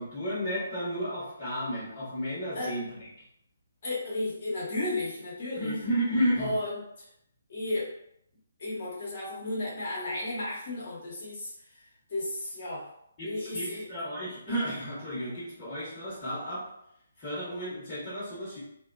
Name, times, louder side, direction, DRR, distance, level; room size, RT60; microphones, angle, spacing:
voice 1, 0.0-2.9 5.6-6.6 13.2-16.6 17.2-18.6, equal, 25° left, -11 dB, 1.1 m, -32 dB
voice 2, 3.8-5.8 6.4-6.8 7.5-7.9 8.6-11.5 12.1-12.8 13.2-13.8, left 1 dB, 45° left, -5 dB, 1.0 m, -33 dB
2.6 x 2.1 x 2.5 m, 0.73 s
figure-of-eight pair, 135°, 0 cm